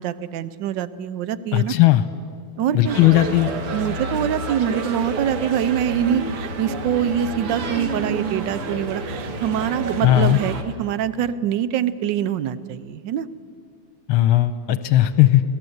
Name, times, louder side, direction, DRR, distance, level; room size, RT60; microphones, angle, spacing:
voice 1, 0.0-1.7 2.6-3.0 3.7-13.3, right 9 dB, 65° right, 15 dB, 1.2 m, -24 dB
voice 2, 1.5-2.0 2.7-3.5 10.0-10.4 14.1-15.4, left 14 dB, 75° left, 12 dB, 1.5 m, -16 dB
sound 1, 2.8-10.6, right 3 dB, 85° right, 2.6 m, -29 dB
26.0 x 18.0 x 8.0 m, 2.3 s
omnidirectional pair, 2.4 m